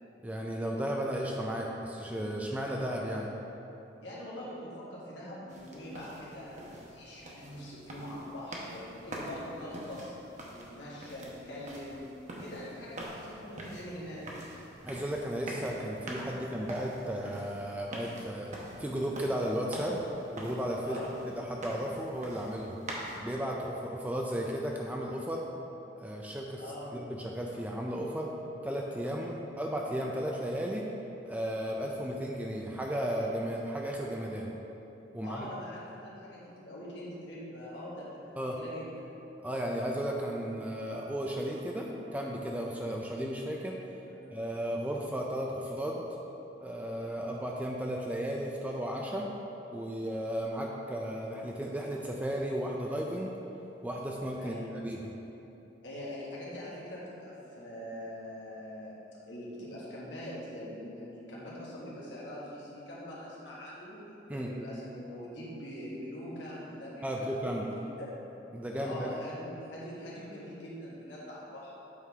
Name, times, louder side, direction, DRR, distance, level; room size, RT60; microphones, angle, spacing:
voice 1, 0.2-3.3 14.8-18.5 18.8-20.0 20.3-21.0 21.2-22.8 23.2-25.4 26.0-26.6 26.9-28.3 28.6-30.8 31.3-34.5 35.1-35.5 38.4-38.6 39.4-43.7 44.3-46.0 46.6-49.3 49.7-53.3 53.8-54.6 54.8-55.0 64.3-64.5 67.0-67.7 68.5-69.2, equal, 10° right, -1 dB, 0.4 m, -34 dB
voice 2, 4.0-10.1 10.5-12.0 12.4-14.3 20.8-21.1 26.6-26.9 35.2-38.9 44.0-44.3 54.4-54.7 55.8-58.9 59.3-64.0 64.3-68.3 68.8-71.7, left 1 dB, 70° left, -7 dB, 1.6 m, -43 dB
sound 1, 5.5-23.2, right 1 dB, 40° right, 0.9 m, -45 dB
8.3 x 3.8 x 4.7 m, 3.0 s
head